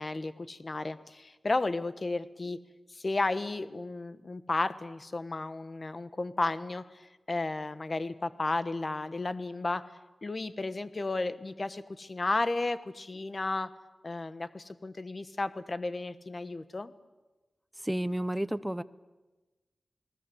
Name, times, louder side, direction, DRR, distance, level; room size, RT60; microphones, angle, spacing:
voice 1, 0.0-2.6 2.9-9.9 10.2-13.7 14.0-16.9, left 2 dB, 40° left, 12 dB, 1.3 m, -33 dB
voice 2, 17.8-18.8, right 1 dB, 5° right, 14 dB, 0.9 m, -31 dB
29.5 x 19.5 x 8.0 m, 1.2 s
wide cardioid pair, 100°, 0 cm